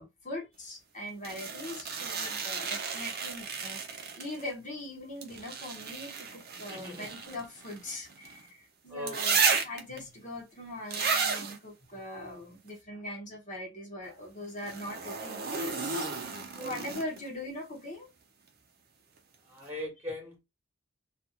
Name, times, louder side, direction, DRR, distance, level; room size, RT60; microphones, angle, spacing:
voice 1, 0.0-16.3 16.6-18.1, left 1 dB, 40° left, 0.9 m, -41 dB
sound 1, 1.2-4.5 5.2-8.4 9.1-10.0 10.9-11.6 14.6-17.3 19.2-19.3, right 5 dB, 50° right, 0.6 m, -33 dB
voice 2, 6.7-7.1 8.9-9.4 16.5-16.8 19.5-20.4, left 1 dB, 10° right, 1.1 m, -40 dB
2.5 x 2.4 x 2.8 m
head